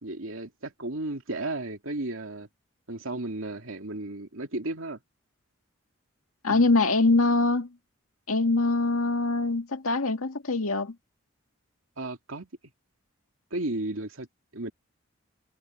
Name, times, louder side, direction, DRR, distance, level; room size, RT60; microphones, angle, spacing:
voice 1, 0.0-2.5 2.9-5.0 6.5-6.6 12.0-12.5 13.5-14.3 14.5-14.7, right 2 dB, 70° right, 2.6 m, -34 dB
voice 2, 6.4-7.7 8.3-11.0, left 3 dB, 80° left, 2.0 m, -23 dB
head